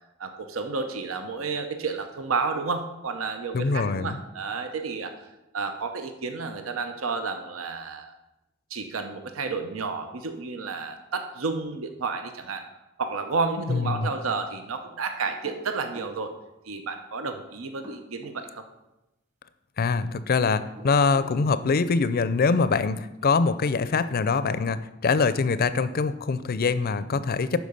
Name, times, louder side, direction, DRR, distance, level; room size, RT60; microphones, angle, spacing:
voice 1, 0.2-5.1 5.5-8.1 8.7-12.6 13.0-16.3 16.7-18.6, right 4 dB, 85° right, 7 dB, 0.8 m, -31 dB
voice 2, 3.5-4.2 13.7-14.1 19.8-27.6, left 4 dB, 50° left, 14 dB, 0.5 m, -24 dB
sound 1, 15.2-16.2 17.6-18.4 20.6-21.4, equal, 35° right, 1.7 m, -45 dB
11.5 x 4.8 x 5.4 m, 0.94 s
head